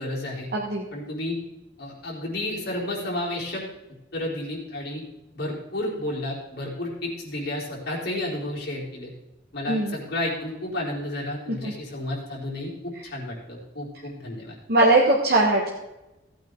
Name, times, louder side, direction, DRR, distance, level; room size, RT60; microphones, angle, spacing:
voice 1, 0.0-0.5 0.9-1.4 1.8-3.6 4.1-5.0 5.3-9.1 9.5-14.6, left 1 dB, 55° left, -4 dB, 4.1 m, -31 dB
voice 2, 0.5-0.9 9.7-10.0 11.6-11.7 14.7-15.7, right 2 dB, 55° right, -2 dB, 1.5 m, -20 dB
16.5 x 8.9 x 3.9 m, 0.99 s
head